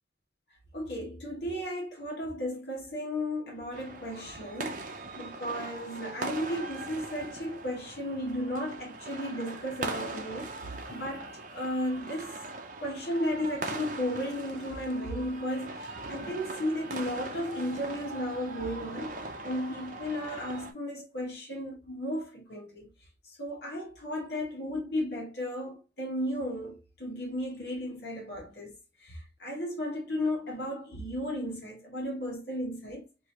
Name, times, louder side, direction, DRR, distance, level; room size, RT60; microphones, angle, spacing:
voice 1, 0.7-12.4 12.8-22.9 23.2-28.7 29.0-33.1, equal, 65° left, 1.3 m, -34 dB
sound 1, 3.7-20.7, right 2 dB, 45° right, 0.7 m, -40 dB
4.8 x 2.7 x 3.1 m
head